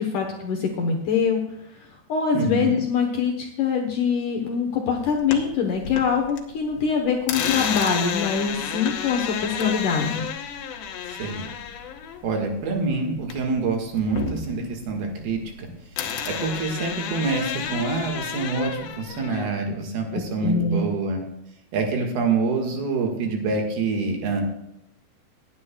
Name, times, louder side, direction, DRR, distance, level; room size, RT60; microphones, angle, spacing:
voice 1, 0.0-1.4 2.1-10.3 20.1-20.9, left 6 dB, 65° left, 2 dB, 2.2 m, -24 dB
voice 2, 2.3-2.8 11.1-11.5 12.2-15.7 16.3-21.2 21.7-24.4, right 4 dB, 70° right, 2 dB, 3.4 m, -26 dB
sound 1, 5.0-6.4 6.7-13.6 13.9-15.6 16.0-19.5, left 7 dB, 85° left, 3.3 m, -31 dB
19.5 x 9.7 x 2.3 m, 0.82 s
omnidirectional pair, 4.9 m